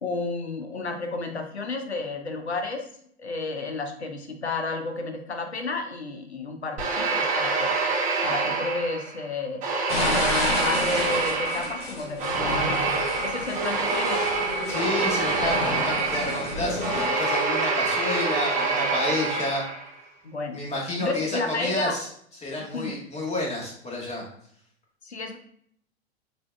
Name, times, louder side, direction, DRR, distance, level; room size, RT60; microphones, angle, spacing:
voice 1, 0.0-2.9 3.2-7.8 8.2-9.6 10.0-12.9 13.2-14.4 20.2-20.6 21.0-22.0 22.7-23.0 25.0-25.4, left 3 dB, 80° left, 5 dB, 0.8 m, -31 dB
sound 1, 6.8-9.2 9.6-19.9, right 3 dB, 25° right, 1.1 m, -26 dB
sound 2, 9.9-17.1, left 2 dB, 65° left, 1.3 m, -31 dB
voice 2, 14.7-19.7 20.5-22.1 22.4-24.2, left 1 dB, 20° left, -3 dB, 1.4 m, -30 dB
6.0 x 2.7 x 2.3 m, 0.66 s
figure-of-eight pair, 100°, 32 cm